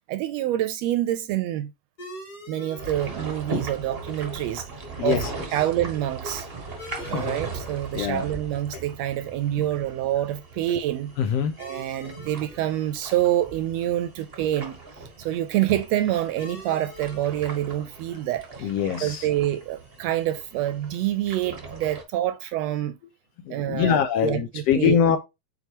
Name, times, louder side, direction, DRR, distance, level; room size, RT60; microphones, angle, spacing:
voice 1, 0.1-1.7 2.5-4.7 5.0-5.2 5.5-6.5 7.1-11.1 11.6-14.8 15.2-18.7 19.0-23.0 23.5-25.0, right 13 dB, 80° right, 1.6 m, -27 dB
sound 1, 2.0-21.1, left 1 dB, 30° left, 3.5 m, -49 dB
sound 2, 2.8-22.0, right 3 dB, 45° right, 0.7 m, -39 dB
voice 2, 5.0-5.3 7.0-7.4 7.9-8.3 8.7-8.8 11.2-11.5 18.6-19.3 23.4-25.2, left 8 dB, 75° left, 1.6 m, -23 dB
8.0 x 4.4 x 2.9 m
omnidirectional pair, 3.3 m